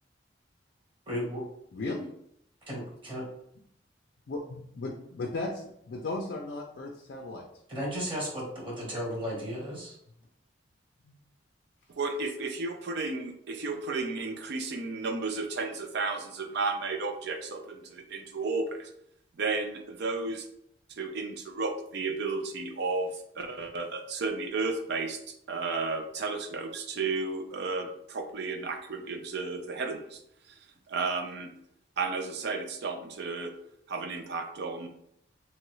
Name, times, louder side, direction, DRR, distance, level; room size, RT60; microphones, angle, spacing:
voice 1, 1.1-1.4 2.7-3.2 7.7-10.0, equal, 30° right, -4 dB, 1.1 m, -34 dB
voice 2, 1.7-2.1 4.3-7.4 11.0-11.1, left 2 dB, 60° left, 0 dB, 0.4 m, -36 dB
voice 3, 11.9-18.9 19.4-20.5 21.0-30.2 30.9-31.5 32.0-33.5 33.9-34.9, right 3 dB, 65° right, 5 dB, 0.4 m, -33 dB
3.0 x 2.3 x 3.0 m, 0.73 s
head